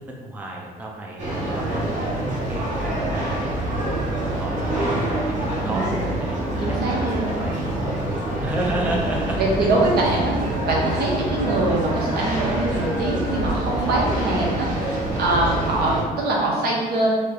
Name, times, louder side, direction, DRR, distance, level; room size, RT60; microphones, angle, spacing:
voice 1, 0.1-5.0 5.3-9.4, right 1 dB, 10° right, -2 dB, 0.4 m, -32 dB
sound 1, 1.2-16.0, right 1 dB, 45° right, 1.3 m, -26 dB
voice 2, 5.6-5.9 6.6-7.3 9.4-17.1, right 2 dB, 70° right, -3 dB, 0.9 m, -23 dB
3.2 x 2.2 x 3.7 m, 1.3 s
cardioid pair, 110°, 17 cm